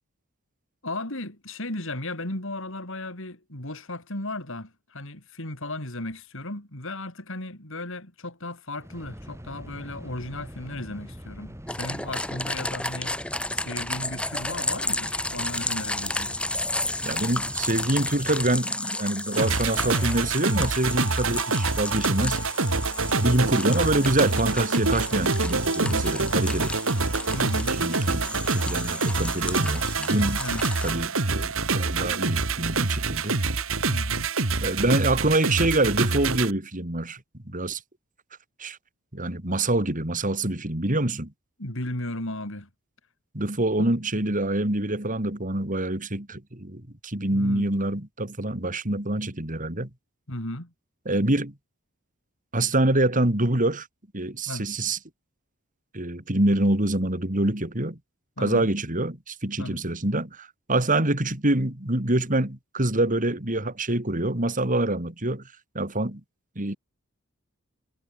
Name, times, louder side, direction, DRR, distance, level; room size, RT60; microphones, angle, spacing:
voice 1, 0.8-13.1 13.5-16.4 25.8-26.1 27.3-27.7 30.3-30.7 33.9-34.3 41.6-42.7 47.3-47.7 50.3-50.7 54.5-54.7 58.4-58.7 59.6-59.8, left 1 dB, 65° left, 5.9 m, -35 dB
sound 1, 8.8-18.6, equal, 15° right, 4.2 m, -43 dB
sound 2, 11.7-30.9, left 1 dB, 5° left, 4.3 m, -32 dB
voice 2, 17.0-22.4 23.2-26.8 27.8-30.4 30.8-33.4 34.6-37.2 37.5-37.8 38.6-38.8 39.1-41.3 43.3-49.9 51.1-51.5 52.5-53.9 54.1-55.0 55.9-58.0 58.4-66.2 66.6-66.8, right 1 dB, 40° right, 3.6 m, -26 dB
sound 3, 19.4-36.5, right 3 dB, 70° right, 2.2 m, -26 dB
head